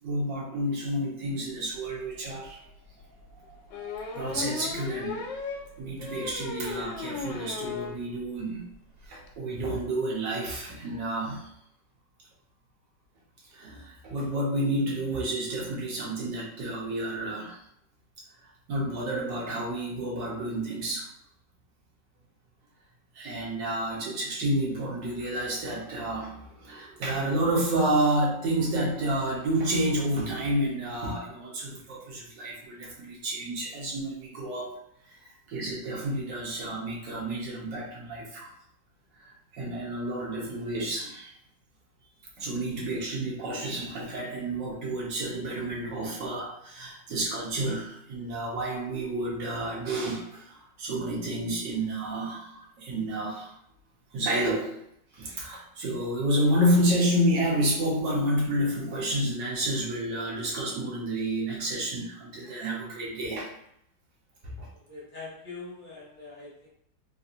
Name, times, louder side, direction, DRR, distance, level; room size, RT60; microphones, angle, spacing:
voice 1, 0.0-2.7 3.3-5.2 5.8-8.6 9.0-11.5 13.5-17.6 18.7-21.1 23.1-34.7 35.1-38.5 39.2-41.3 42.4-53.5 54.1-54.8 55.1-63.5 64.4-64.7, right 1 dB, 75° right, -3 dB, 1.6 m, -30 dB
sound 1, 1.9-2.0 2.4-2.5 3.7-8.0 8.4-8.5 8.7-8.8 9.0-9.3, left 4 dB, 85° left, 1.3 m, -36 dB
voice 2, 64.7-66.7, left 3 dB, 50° left, -6 dB, 1.4 m, -43 dB
3.6 x 2.7 x 2.4 m, 0.72 s
omnidirectional pair, 2.0 m